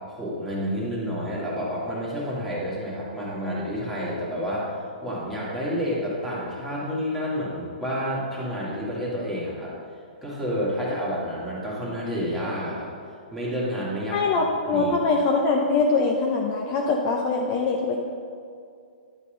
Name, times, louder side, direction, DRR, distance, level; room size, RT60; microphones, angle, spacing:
voice 1, 0.1-9.7 10.2-12.9 13.3-14.9, equal, ahead, -8 dB, 2.0 m, -29 dB
voice 2, 14.1-18.0, left 3 dB, 35° left, 1 dB, 0.7 m, -23 dB
11.0 x 4.1 x 5.2 m, 2.3 s
hypercardioid pair, 150°, 5 cm